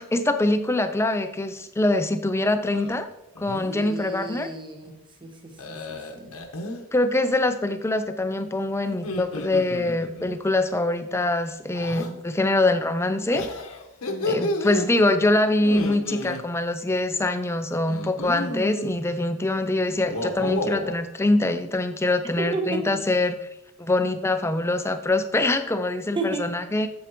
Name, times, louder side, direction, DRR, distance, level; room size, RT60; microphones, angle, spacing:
voice 1, 0.0-3.1 3.4-4.5 6.9-13.5 14.3-23.4 23.8-26.9, left 2 dB, 10° left, 9 dB, 0.4 m, -24 dB
sound 1, 2.6-3.0 3.4-3.9 5.6-6.8 8.9-10.3 11.7-12.1 13.3-14.9 15.6-16.4 17.9-19.0 20.0-21.0, left 1 dB, 80° left, 1.0 m, -31 dB
voice 2, 3.7-4.9 5.2-6.4 14.0-14.4 22.4-22.8 26.1-26.5, right 2 dB, 20° right, 4 dB, 0.9 m, -32 dB
8.1 x 7.2 x 3.0 m, 0.84 s
head